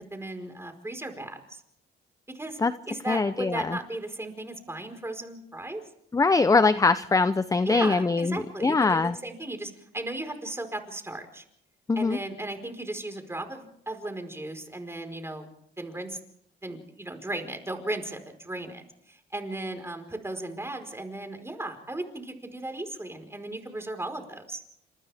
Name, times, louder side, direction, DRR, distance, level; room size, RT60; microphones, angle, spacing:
voice 1, 0.0-1.6 2.3-2.6 2.9-5.8 7.7-11.4 11.9-15.5 15.8-16.2 16.6-18.8 19.1-24.6, right 2 dB, 10° right, 6 dB, 4.7 m, -36 dB
voice 2, 3.1-3.8 6.1-9.1 11.9-12.2, left 3 dB, 15° left, 12 dB, 0.7 m, -22 dB
29.5 x 27.0 x 3.6 m, 0.72 s
cardioid pair, 90°, 20 cm